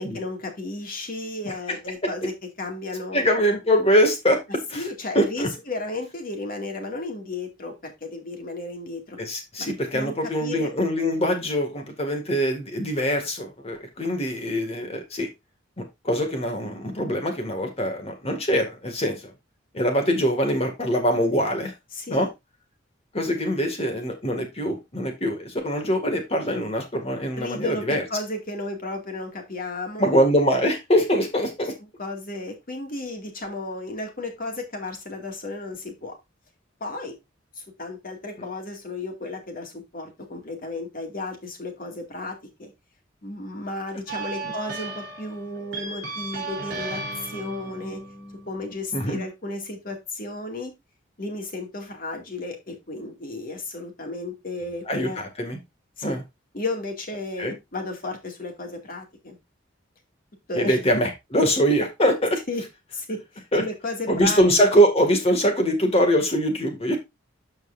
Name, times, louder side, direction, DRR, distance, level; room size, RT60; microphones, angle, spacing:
voice 1, 0.0-3.3 4.8-9.2 9.6-10.1 10.4-10.7 21.9-22.3 27.3-30.2 32.0-36.1 36.8-37.1 37.6-42.7 43.2-48.0 48.5-50.7 51.2-55.2 56.0-56.2 56.5-59.4 60.5-60.8 62.5-62.6 62.9-64.4, left 2 dB, 50° left, 3 dB, 2.2 m, -33 dB
voice 2, 1.4-1.8 3.1-4.4 4.7-4.8 5.1-5.5 9.2-15.3 15.8-19.3 19.7-21.7 22.1-22.3 23.1-28.0 30.0-31.7 44.4-44.5 48.9-49.2 54.9-55.6 56.0-56.2 57.4-57.5 60.5-62.4 63.5-63.7 64.1-67.0, equal, 30° left, 4 dB, 2.1 m, -23 dB
sound 1, 44.1-49.1, right 3 dB, 60° right, 3.7 m, -35 dB
13.0 x 4.6 x 2.6 m, 0.21 s
head